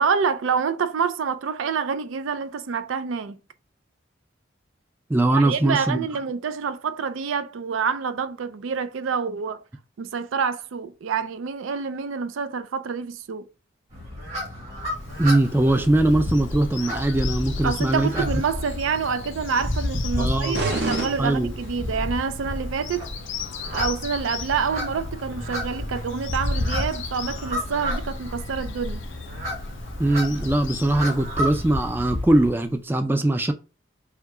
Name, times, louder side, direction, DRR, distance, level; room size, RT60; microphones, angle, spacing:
voice 1, 0.0-3.4 5.3-9.6 10.0-13.5 17.6-23.1 23.7-29.0, right 6 dB, 80° right, 0.4 m, -27 dB
voice 2, 5.1-6.1 15.2-18.3 20.2-20.6 21.2-21.5 30.0-33.5, right 1 dB, 10° right, 0.3 m, -21 dB
sound 1, 13.9-32.5, left 1 dB, 35° right, 1.8 m, -31 dB
Bird vocalization bird call bird song, 14.8-32.8, left 5 dB, 70° left, 0.5 m, -38 dB
sound 2, 20.5-22.0, right 3 dB, 55° right, 0.9 m, -28 dB
3.5 x 2.7 x 4.7 m
head